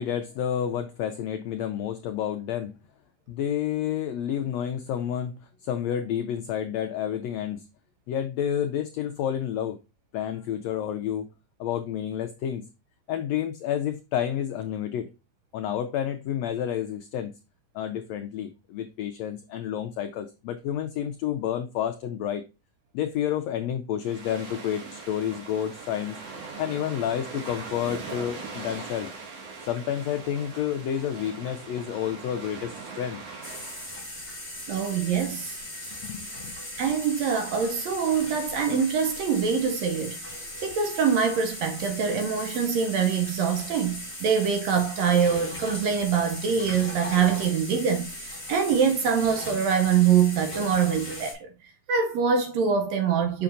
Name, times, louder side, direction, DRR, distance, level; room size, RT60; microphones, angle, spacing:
voice 1, 0.0-2.7 3.3-5.3 5.6-7.6 8.1-9.8 10.1-11.3 11.6-12.6 13.1-15.1 15.5-17.3 17.7-22.4 22.9-26.2 26.6-29.1 29.7-33.2 36.1-36.5, left 10 dB, 90° left, 1.5 m, -30 dB
sound 1, 24.0-34.0, right 4 dB, 55° right, 2.4 m, -41 dB
sound 2, 33.4-51.3, left 1 dB, 5° left, 3.1 m, -38 dB
voice 2, 34.7-35.6 36.8-40.2 40.6-53.4, right 7 dB, 75° right, 1.7 m, -24 dB
6.9 x 5.8 x 2.5 m
omnidirectional pair, 3.7 m